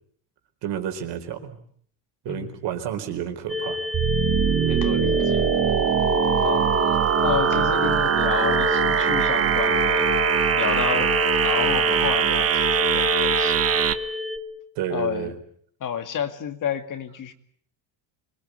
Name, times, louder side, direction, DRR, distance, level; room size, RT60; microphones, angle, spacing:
voice 1, 0.6-1.6 2.2-3.8 14.7-15.3, right 9 dB, 65° right, 6 dB, 4.4 m, -30 dB
sound 1, 3.5-14.4, left 4 dB, ahead, 1.8 m, -28 dB
sound 2, 3.9-13.9, right 9 dB, 30° right, 1.3 m, -22 dB
voice 2, 4.6-5.5 6.4-7.0 7.2-10.1 10.5-11.1 11.4-13.8 14.9-15.3 15.8-17.3, left 8 dB, 40° left, 8 dB, 2.2 m, -30 dB
25.5 x 21.0 x 8.1 m, 0.62 s
cardioid pair, 150°, 46 cm